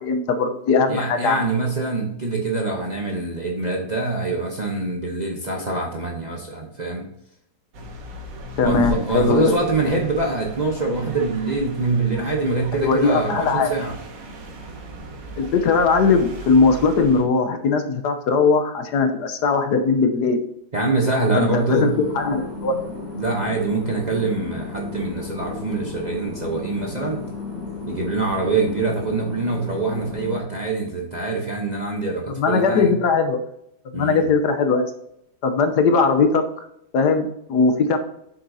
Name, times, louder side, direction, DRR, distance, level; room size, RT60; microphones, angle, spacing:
voice 1, 0.0-1.4 8.6-9.5 12.7-13.7 15.4-20.4 21.3-22.9 32.4-33.4 33.9-34.9 35.4-36.4 36.9-38.0, left 4 dB, 70° left, 7 dB, 1.3 m, -19 dB
voice 2, 0.9-7.1 8.6-13.9 20.7-21.9 23.1-27.2 27.9-32.9 33.9-34.2, right 3 dB, 35° right, -1 dB, 0.7 m, -24 dB
sound 1, 7.7-17.2, right 2 dB, 85° right, 1.9 m, -37 dB
sound 2, 21.6-30.4, left 4 dB, 35° left, 2.1 m, -34 dB
8.0 x 7.0 x 2.7 m, 0.77 s
omnidirectional pair, 1.9 m